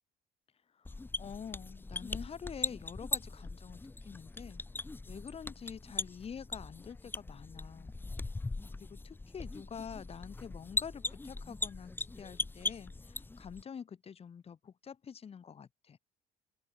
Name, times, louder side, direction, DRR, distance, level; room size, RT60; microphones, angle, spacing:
voice 1, 0.8-4.6 5.1-7.9 8.7-16.0, left 7 dB, 35° left, 1.5 m, -47 dB
sound 1, 0.8-13.6, left 3 dB, 10° left, 0.7 m, -40 dB
open air
cardioid pair, 110°, 17 cm